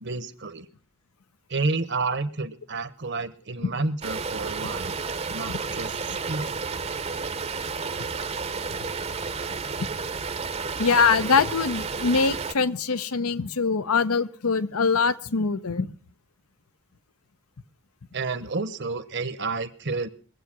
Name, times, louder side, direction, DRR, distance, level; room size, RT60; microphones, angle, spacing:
voice 1, 0.0-0.7 1.5-4.9 5.3-5.9 6.3-6.6 18.1-20.1, right 3 dB, 50° right, 14 dB, 1.0 m, -30 dB
sound 1, 4.0-12.5, right 4 dB, 30° right, 0.7 m, -31 dB
voice 2, 10.8-15.9, left 5 dB, 75° left, 15 dB, 0.8 m, -23 dB
22.0 x 8.0 x 6.0 m, 0.39 s
head